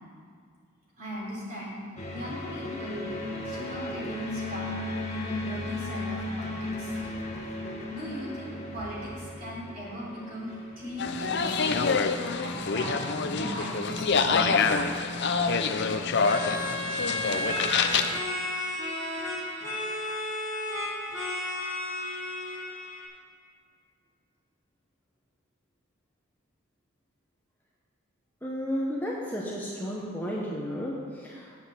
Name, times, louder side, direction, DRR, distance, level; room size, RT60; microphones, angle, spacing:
voice 1, 1.0-1.8 2.1-3.1 3.4-4.7 5.1-7.6 7.9-14.8, equal, 40° right, -5 dB, 3.5 m, -38 dB
sound 1, 2.0-13.3, left 1 dB, 30° left, 1.5 m, -36 dB
sound 2, 11.0-18.2, left 5 dB, 50° left, 0.6 m, -26 dB
sound 3, 16.2-23.1, left 1 dB, 15° right, 3.5 m, -33 dB
voice 2, 28.4-31.6, equal, 10° left, -4 dB, 1.0 m, -33 dB
8.6 x 8.0 x 8.0 m, 2.1 s
head